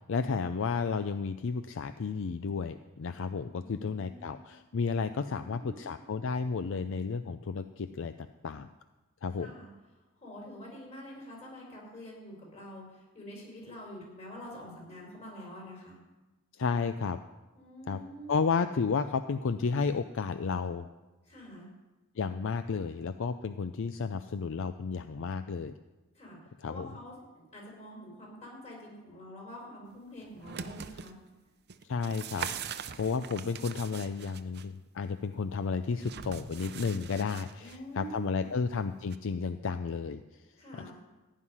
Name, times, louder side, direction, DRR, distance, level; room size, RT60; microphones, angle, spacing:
voice 1, 0.1-8.7 9.2-9.5 16.5-17.2 17.9-18.0 18.3-20.9 22.2-25.7 26.6-26.9 31.9-40.2, left 5 dB, 65° left, 10 dB, 0.5 m, -32 dB
voice 2, 3.6-4.3 5.2-5.9 9.3-16.0 17.5-18.4 21.2-21.7 26.1-26.4 26.6-31.2 37.6-38.5 40.6-40.9, equal, 35° left, -2 dB, 5.0 m, -47 dB
sound 1, 30.2-31.1 31.7-34.7 36.0-37.8 39.1-39.2, right 7 dB, 50° right, 0.6 m, -42 dB
15.5 x 5.7 x 9.8 m, 1.1 s
head